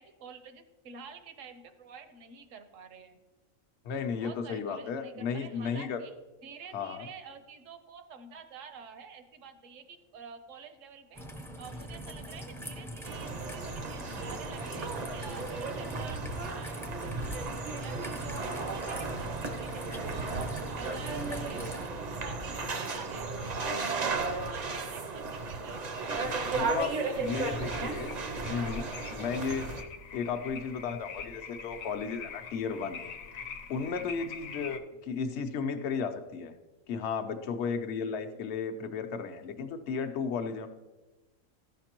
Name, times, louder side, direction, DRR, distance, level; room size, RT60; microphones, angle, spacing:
voice 1, 0.0-3.2 4.2-6.2 6.4-11.2 11.6-17.5 17.8-20.4 20.7-25.8 26.3-27.6 28.0-29.4, right 6 dB, 75° right, 8 dB, 1.1 m, -49 dB
voice 2, 3.8-6.0 6.7-7.1 26.5-26.9 27.2-28.1 28.4-28.9 29.1-29.6 30.1-33.0 33.7-36.5 36.9-40.7, left 6 dB, 60° left, 7 dB, 0.9 m, -34 dB
Raindrop / Trickle dribble, 11.1-21.9, equal, 5° left, 0.4 m, -43 dB
sound 1, 13.0-29.8, right 4 dB, 45° right, 0.6 m, -35 dB
sound 2, 27.1-34.8, left 6 dB, 90° left, 1.1 m, -44 dB
14.0 x 5.9 x 2.9 m, 1.1 s
omnidirectional pair, 1.4 m